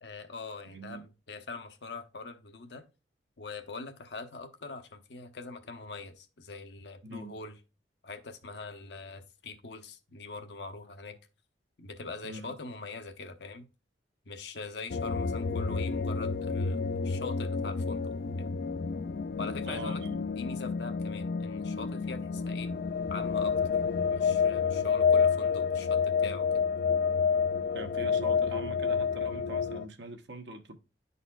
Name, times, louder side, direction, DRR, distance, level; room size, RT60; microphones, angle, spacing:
voice 1, 0.0-2.8 3.4-7.6 8.0-11.2 11.8-13.7 14.3-18.5 19.4-22.7 23.1-23.6 24.1-26.6, left 3 dB, 75° left, 0.9 m, -43 dB
voice 2, 0.6-1.0 7.0-7.4 12.2-12.5 19.7-20.2 27.7-30.7, right 1 dB, 80° right, 1.0 m, -42 dB
sound 1, 14.9-29.8, left 5 dB, 55° left, 0.3 m, -29 dB
11.0 x 4.1 x 2.3 m
head